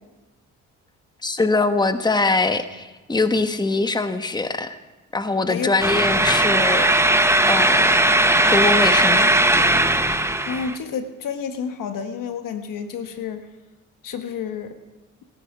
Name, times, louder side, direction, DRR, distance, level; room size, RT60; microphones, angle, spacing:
voice 1, 1.2-4.8 5.1-6.9 7.5-8.0 8.5-9.3, left 3 dB, 15° left, 9 dB, 1.1 m, -22 dB
sound 1, 5.8-10.8, right 1 dB, 10° right, 1.1 m, -18 dB
voice 2, 10.5-13.5 14.0-14.8, left 6 dB, 75° left, 7 dB, 1.4 m, -30 dB
17.0 x 13.5 x 5.1 m, 1.1 s
supercardioid pair, 60°, 33 cm